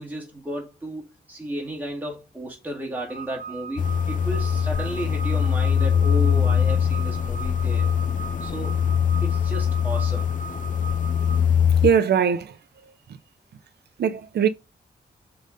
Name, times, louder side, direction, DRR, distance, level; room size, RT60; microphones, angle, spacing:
voice 1, 0.0-7.9 8.4-8.8 9.2-10.3, right 1 dB, 10° right, 2.0 m, -33 dB
sound 1, 3.1-11.4, right 6 dB, 50° right, 1.0 m, -39 dB
sound 2, 3.8-11.9, left 8 dB, 50° left, 0.4 m, -22 dB
voice 2, 11.8-12.5 14.0-14.5, right 7 dB, 80° right, 0.7 m, -20 dB
5.3 x 3.9 x 5.0 m
wide cardioid pair, 115°, 17 cm